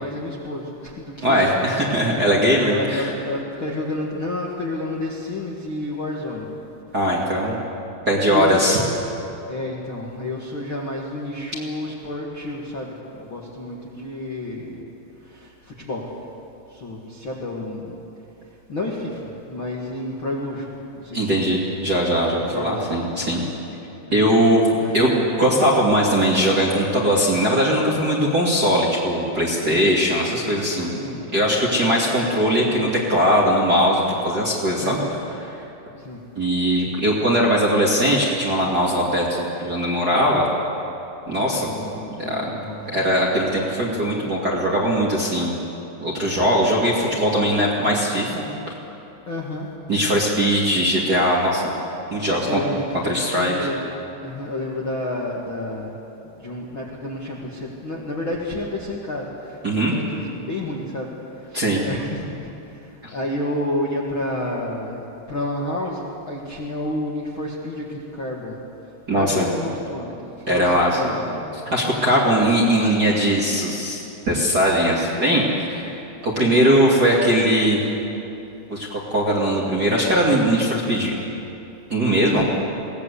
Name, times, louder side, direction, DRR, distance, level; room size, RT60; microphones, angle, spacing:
voice 1, 0.0-1.7 2.6-6.5 8.3-8.9 9.5-14.8 15.3-15.5 15.8-16.1 16.7-18.0 18.7-19.2 19.5-20.6 21.0-21.6 22.5-22.9 24.0-24.5 24.8-25.0 25.4-25.5 29.6-29.9 30.9-31.2 34.7-35.1 36.0-36.2 41.3-43.0 46.6-46.9 49.3-49.7 52.3-53.9 54.2-55.9 56.4-59.6 59.9-61.1 61.5-62.5 63.1-68.6 69.1-71.5 76.4-76.6 82.3-82.4, left 1 dB, 45° left, -3 dB, 1.7 m, -30 dB
voice 2, 1.2-3.1 6.9-7.6 8.1-8.8 21.1-23.4 24.1-30.9 31.3-35.0 35.5-35.6 36.4-40.5 41.3-41.7 42.2-42.5 42.9-45.5 46.0-48.4 49.9-51.7 52.1-52.6 53.0-53.7 59.6-59.9 61.5-61.8 63.0-63.1 69.1-69.5 70.5-71.0 71.7-77.8 78.7-81.1 81.9-82.4, equal, 30° right, -5 dB, 2.0 m, -20 dB
22.5 x 18.0 x 8.3 m, 2.9 s
omnidirectional pair, 5.1 m